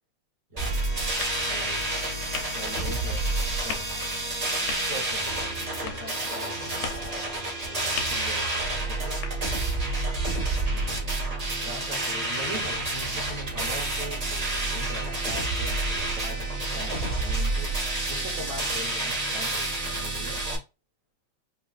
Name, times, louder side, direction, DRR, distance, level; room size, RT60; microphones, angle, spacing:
sound 1, 0.6-20.6, right 2 dB, 80° right, 0.3 m, -29 dB
voice 1, 1.4-3.2 3.6-3.9 4.8-9.2 10.7-11.0 11.4-20.5, equal, 45° right, 1.0 m, -42 dB
sound 2, 4.5-10.3, left 7 dB, 85° left, 2.3 m, -42 dB
5.2 x 2.7 x 2.4 m
omnidirectional pair, 3.4 m